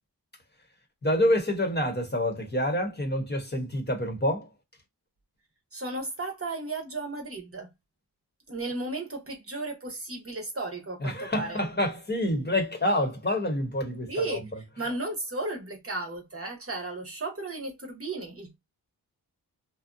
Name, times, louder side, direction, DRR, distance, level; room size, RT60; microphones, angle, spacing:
voice 1, 1.0-4.5 11.0-14.4, left 1 dB, 25° left, 0.9 m, -27 dB
voice 2, 5.7-7.7 8.5-11.6 14.1-14.4 14.8-18.6, right 2 dB, 35° right, 0.9 m, -34 dB
2.7 x 2.0 x 2.6 m
cardioid pair, 60°, 40 cm